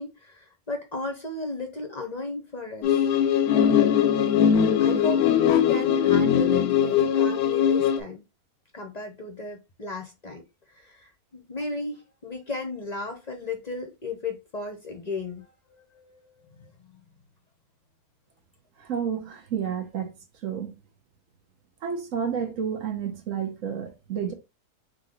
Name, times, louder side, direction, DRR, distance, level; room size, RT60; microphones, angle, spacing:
voice 1, 0.0-3.1 4.8-8.2 8.7-10.4 10.7-16.7, left 3 dB, 40° left, 0.7 m, -35 dB
sound 1, 2.8-8.0, left 8 dB, 90° left, 1.1 m, -21 dB
voice 2, 18.8-20.1 20.4-20.7 21.8-24.3, right 7 dB, 65° right, 1.3 m, -30 dB
3.7 x 3.0 x 3.7 m
omnidirectional pair, 1.6 m